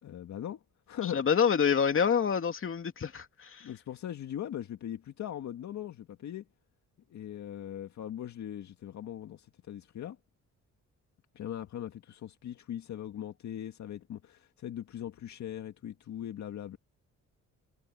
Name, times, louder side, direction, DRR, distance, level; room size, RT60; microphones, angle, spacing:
voice 1, 0.0-1.3 3.6-6.5 7.1-10.2 11.3-16.8, left 10 dB, 65° left, 2.0 m, -40 dB
voice 2, 1.1-3.7, left 7 dB, 45° left, 2.8 m, -27 dB
cardioid pair, 90°, 30 cm